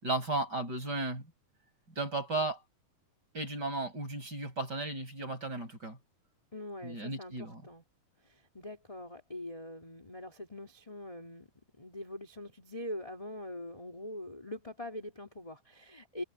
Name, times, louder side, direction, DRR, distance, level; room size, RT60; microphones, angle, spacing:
voice 1, 0.0-1.2 2.0-2.6 3.3-6.0 6.8-7.6, right 2 dB, 25° right, 6.5 m, -34 dB
voice 2, 6.5-7.8 8.2-11.5 11.8-16.2, left 1 dB, 10° left, 2.5 m, -43 dB
omnidirectional pair, 4.3 m